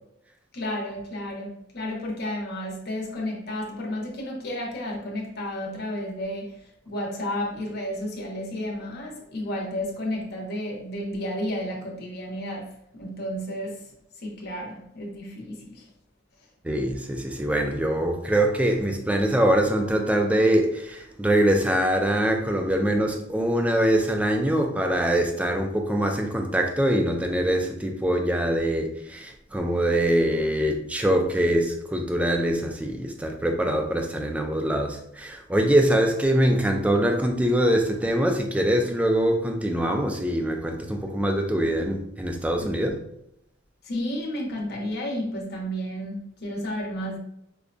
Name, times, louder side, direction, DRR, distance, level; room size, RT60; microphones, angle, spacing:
voice 1, 0.5-6.5 6.9-13.8 14.2-15.8 42.6-42.7 43.8-47.2, left 1 dB, 55° left, 0 dB, 0.8 m, -32 dB
voice 2, 16.6-43.0, right 1 dB, 5° right, 3 dB, 0.3 m, -23 dB
4.8 x 2.2 x 2.5 m, 0.76 s
head